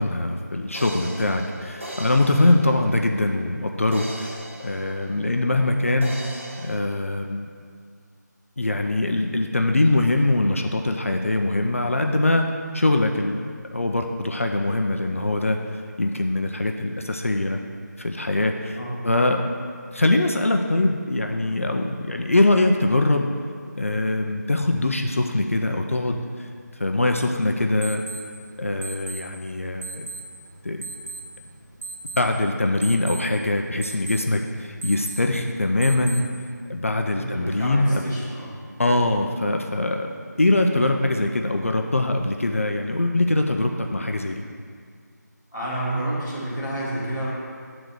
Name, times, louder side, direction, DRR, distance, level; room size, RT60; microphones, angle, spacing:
voice 1, 0.0-6.1 6.6-7.5 8.6-12.5 12.7-13.4 13.7-15.6 16.0-17.6 18.0-18.8 19.0-19.4 19.9-23.3 23.8-26.5 26.8-28.0 28.6-30.1 30.6-30.9 32.1-36.3 36.7-38.0 38.8-40.1 40.4-44.4, left 2 dB, 45° left, 4 dB, 0.4 m, -22 dB
sound 1, 0.7-3.3 3.9-5.6 6.0-6.8, right 1 dB, 40° right, 0.7 m, -38 dB
sound 2, 27.2-36.5, right 3 dB, 85° right, 0.9 m, -39 dB
voice 2, 37.1-38.6 45.5-47.3, right 1 dB, 5° right, -13 dB, 0.7 m, -29 dB
6.6 x 3.9 x 6.1 m, 2.1 s
figure-of-eight pair, 175°, 10 cm